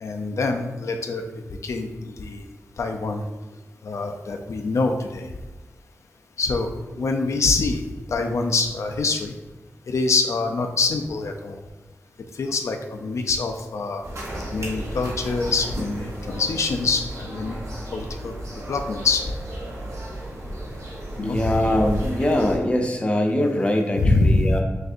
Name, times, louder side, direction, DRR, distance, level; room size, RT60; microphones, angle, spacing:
voice 1, 0.0-1.3 1.6-2.5 2.8-3.2 3.8-5.3 6.4-7.8 8.1-9.3 9.9-11.6 12.3-14.0 14.5-17.6 17.9-18.4 18.7-19.2 21.2-21.4 24.0-24.5, left 3 dB, 70° left, 5 dB, 0.4 m, -24 dB
sound 1, 14.0-22.6, right 1 dB, 80° right, 1.3 m, -33 dB
voice 2, 21.2-24.6, left 1 dB, 20° left, 2 dB, 0.6 m, -22 dB
6.1 x 2.6 x 2.6 m, 1.2 s
wide cardioid pair, 115°, 5 cm